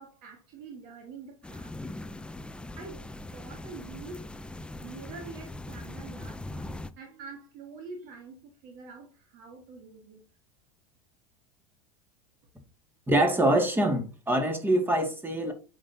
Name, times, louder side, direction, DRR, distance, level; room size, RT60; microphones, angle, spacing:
voice 1, 0.0-2.0 2.5-3.1 3.3-4.3 4.8-10.2, right 4 dB, 50° right, 1.6 m, -46 dB
sound 1, 1.4-6.9, left 2 dB, 5° left, 0.4 m, -41 dB
voice 2, 13.1-15.5, right 1 dB, 10° right, 2.0 m, -24 dB
8.3 x 5.3 x 2.7 m
hypercardioid pair, 80°, 18 cm